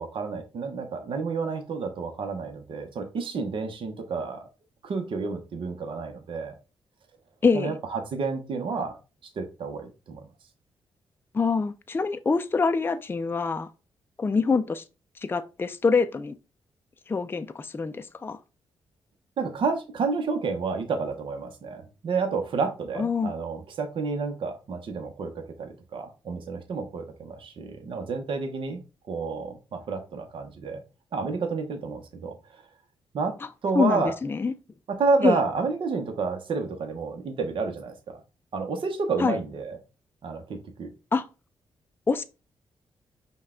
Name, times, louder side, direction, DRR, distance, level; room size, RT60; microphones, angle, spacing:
voice 1, 0.0-4.5 4.8-6.5 7.5-9.0 9.4-10.2 19.4-28.8 29.1-30.8 31.1-32.6 33.1-33.4 33.6-34.1 34.9-38.2 38.5-39.8 40.2-40.9, right 4 dB, 65° right, 0.8 m, -30 dB
voice 2, 7.4-7.8 11.3-13.7 14.2-14.8 15.2-16.3 17.1-18.4 23.0-23.3 33.7-34.5 35.2-35.4 39.2-39.4 41.1-41.2 42.1-42.2, left 4 dB, 25° left, 0.4 m, -25 dB
5.4 x 2.2 x 3.6 m
cardioid pair, 70°, 9 cm